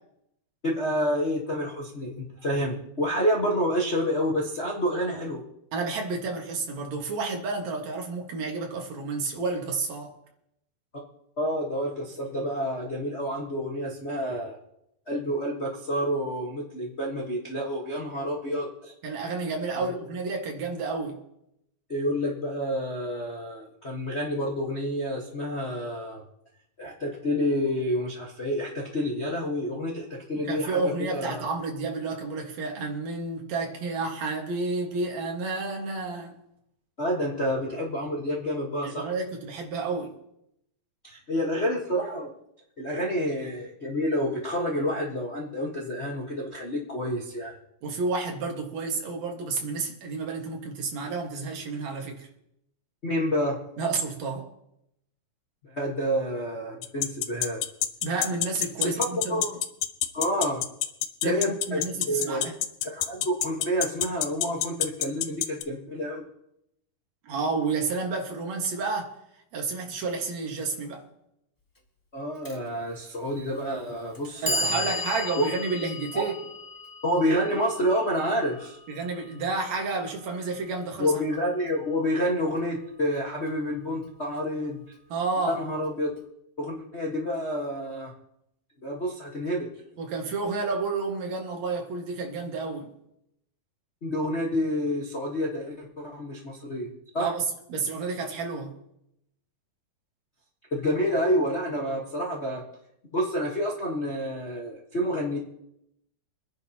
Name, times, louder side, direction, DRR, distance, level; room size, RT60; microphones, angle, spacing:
voice 1, 0.6-5.4 11.4-14.6 15.1-18.9 19.8-20.0 21.9-26.2 26.8-31.5 37.0-39.1 41.0-42.3 42.8-47.5 53.0-53.6 55.6-57.6 58.8-59.6 60.1-60.6 61.2-62.5 62.8-66.3 72.1-75.0 75.4-75.5 76.1-76.2 77.0-78.8 81.0-84.8 85.5-86.1 86.6-88.1 88.8-89.7 94.0-97.3 100.7-102.6 103.1-105.4, equal, 45° left, 0.8 m, -29 dB
voice 2, 5.7-10.1 19.0-21.2 30.3-36.3 38.8-40.1 47.8-52.3 53.8-54.5 58.0-59.4 61.2-62.5 67.2-69.2 69.5-71.0 74.4-76.3 78.9-81.1 85.1-85.6 90.0-92.9 97.2-98.8, right 4 dB, 60° right, 2.8 m, -30 dB
sound 1, 56.8-65.6, left 13 dB, 90° left, 2.3 m, -25 dB
Clock, 72.4-72.6 73.5-73.6 74.1-80.2, left 1 dB, 15° left, 0.8 m, -35 dB
25.0 x 10.5 x 2.9 m
omnidirectional pair, 3.7 m